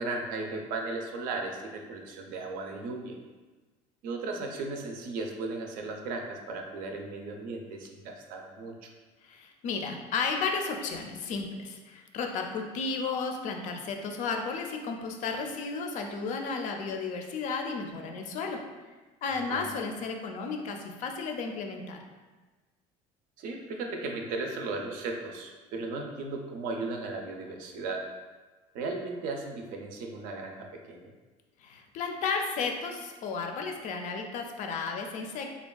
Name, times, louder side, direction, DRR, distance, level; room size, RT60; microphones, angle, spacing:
voice 1, 0.0-3.2 4.0-8.9 19.3-19.8 23.4-28.0 28.7-31.1, right 3 dB, 65° right, 2 dB, 0.5 m, -36 dB
voice 2, 9.2-18.6 19.2-22.0 31.6-35.5, left 4 dB, 55° left, 3 dB, 0.4 m, -33 dB
3.4 x 2.3 x 2.3 m, 1.3 s
supercardioid pair, 90°, 15 cm